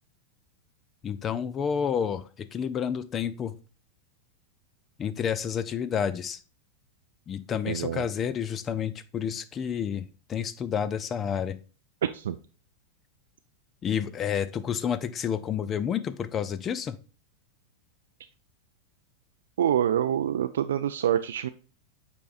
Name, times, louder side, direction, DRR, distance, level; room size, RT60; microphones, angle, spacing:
voice 1, 1.0-3.6 5.0-6.4 7.3-11.6 13.8-17.0, left 8 dB, 25° left, 14 dB, 0.4 m, -30 dB
voice 2, 7.7-8.0 12.0-12.4 19.6-21.5, right 10 dB, 60° right, 10 dB, 0.3 m, -26 dB
8.3 x 4.5 x 2.5 m, 0.35 s
figure-of-eight pair, 90°, 0 cm